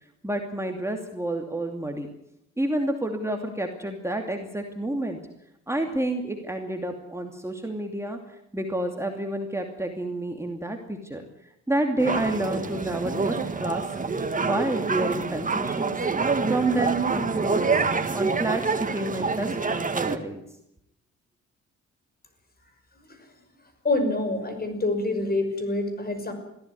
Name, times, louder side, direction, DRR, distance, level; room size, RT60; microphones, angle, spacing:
voice 1, 0.2-2.1 2.6-5.2 5.7-13.8 14.4-16.0 16.5-17.9 18.1-20.4, right 1 dB, 10° right, 3 dB, 2.6 m, -29 dB
sound 1, 12.0-20.2, right 4 dB, 25° right, 1.9 m, -26 dB
voice 2, 23.8-26.3, left 2 dB, 30° left, 8 dB, 5.8 m, -26 dB
21.5 x 15.0 x 9.5 m, 0.81 s
cardioid pair, 90°, 30 cm